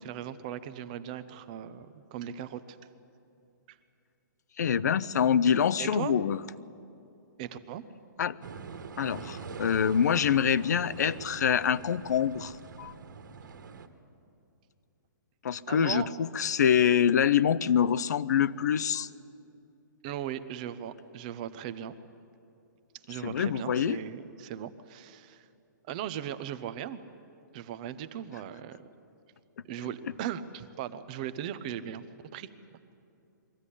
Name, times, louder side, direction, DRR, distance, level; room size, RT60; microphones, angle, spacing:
voice 1, 0.0-2.8 5.8-6.1 7.4-7.8 15.7-16.1 20.0-21.9 23.1-25.4 25.8-27.0 27.5-28.9 29.7-32.0 32.3-32.8, right 10 dB, 25° right, 12 dB, 0.7 m, -38 dB
voice 2, 4.6-6.4 8.2-8.4 9.0-12.5 12.8-12.9 15.4-19.1 23.2-24.0, left 8 dB, 55° left, 18 dB, 0.6 m, -25 dB
sound 1, 8.4-13.9, right 5 dB, 70° right, 1.7 m, -43 dB
22.5 x 15.0 x 9.9 m, 2.6 s
hypercardioid pair, 175°, 11 cm